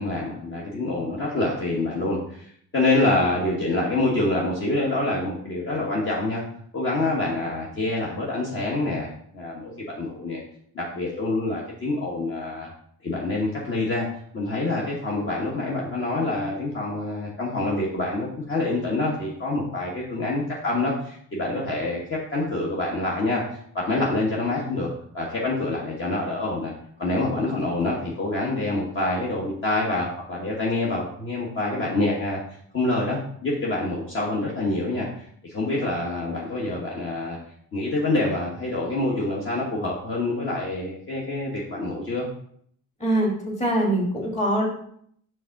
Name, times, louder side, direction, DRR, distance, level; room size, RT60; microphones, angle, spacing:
voice 1, 0.0-6.4 6.7-9.1 9.3-10.4 10.7-12.7 13.0-14.1 14.3-26.7 27.0-32.4 32.7-37.4 37.7-42.3, left 2 dB, 40° left, -4 dB, 1.4 m, -26 dB
voice 2, 43.0-43.3 43.6-44.7, right 1 dB, 20° left, -2 dB, 2.2 m, -22 dB
5.3 x 3.7 x 5.8 m, 0.65 s
cardioid pair, 120°, 31 cm